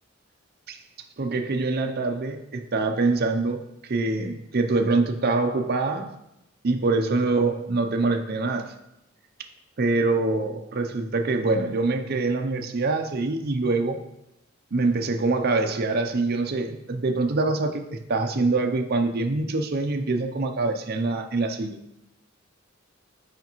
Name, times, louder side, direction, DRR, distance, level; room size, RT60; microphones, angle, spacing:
voice 1, 1.2-6.1 6.6-8.7 9.8-14.0 14.7-21.8, right 3 dB, 50° right, 5 dB, 0.6 m, -25 dB
8.1 x 5.1 x 3.0 m, 0.86 s
head